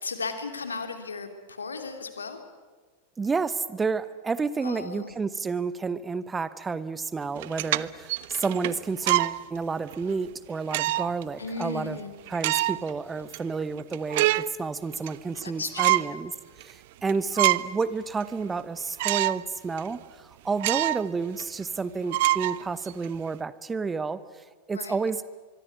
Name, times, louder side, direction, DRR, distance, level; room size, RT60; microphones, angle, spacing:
voice 1, 0.0-2.4 4.6-5.2 11.4-12.1 15.4-16.1 24.7-24.9, left 4 dB, 75° left, 7 dB, 3.1 m, -35 dB
voice 2, 3.2-12.0 12.3-16.3 16.6-25.3, right 4 dB, 15° right, 16 dB, 1.0 m, -30 dB
sound 1, 7.3-9.4 9.9-10.0 10.7-11.2 11.6-11.7 12.3-12.9 13.3-13.4 13.8-14.5 14.9-15.4 15.8-16.1 16.6-16.7 17.1-17.8 18.2-18.3 19.0-19.4 19.8-19.9 20.6-21.1 21.4-21.5 22.1-23.1, right 18 dB, 50° right, 0.7 m, -25 dB
24.5 x 23.5 x 9.4 m, 1.4 s
figure-of-eight pair, 90°, 0 cm